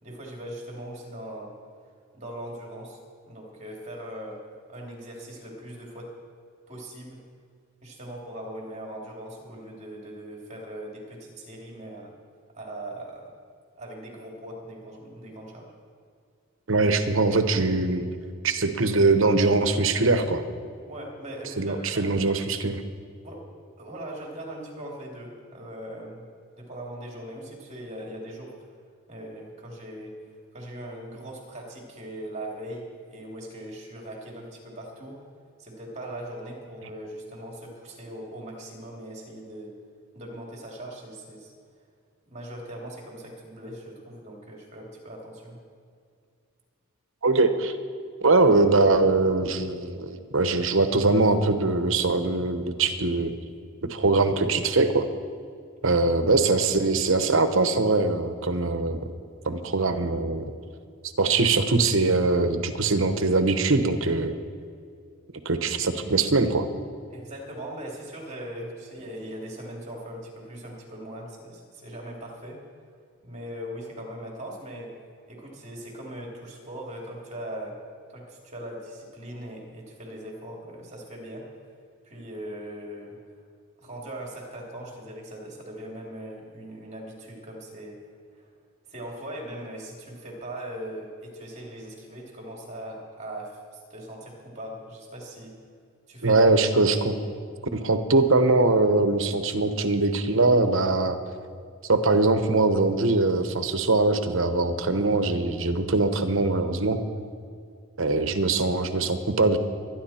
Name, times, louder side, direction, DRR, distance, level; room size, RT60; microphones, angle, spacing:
voice 1, 0.0-1.5 2.1-3.0 3.3-4.4 4.7-6.1 6.7-7.2 7.8-12.1 12.5-13.3 13.8-15.7 20.9-22.1 23.2-23.4 23.8-26.2 26.6-28.5 29.1-30.1 30.5-35.2 35.6-39.7 40.1-41.5 42.3-45.6 67.1-72.6 73.2-74.9 75.3-77.7 78.1-81.4 82.0-83.2 83.8-88.0 88.3-88.4 88.9-95.5 96.1-96.4, right 1 dB, 30° right, -1 dB, 3.0 m, -40 dB
voice 2, 16.7-18.1 18.4-20.4 21.6-22.8 47.2-47.8 48.2-53.3 53.8-55.1 55.8-59.0 59.4-60.5 61.2-64.3 65.4-66.7 96.2-97.2 97.7-101.2 101.9-107.0 108.0-109.6, right 3 dB, 60° right, 9 dB, 1.0 m, -22 dB
22.0 x 10.5 x 4.4 m, 2.3 s
head